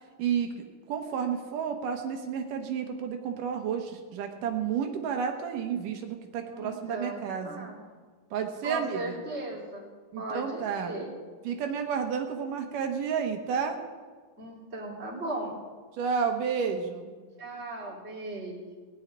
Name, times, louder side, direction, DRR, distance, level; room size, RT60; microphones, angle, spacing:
voice 1, 0.2-0.5 0.9-7.7 8.3-9.2 10.1-10.9 11.4-13.8 16.0-17.1, right 7 dB, 85° right, 4 dB, 2.8 m, -31 dB
voice 2, 6.5-7.8 8.6-9.8 10.2-11.1 14.4-15.6 17.4-18.6, right 2 dB, 20° right, -3 dB, 3.0 m, -37 dB
17.5 x 6.4 x 9.8 m, 1.5 s
omnidirectional pair, 3.7 m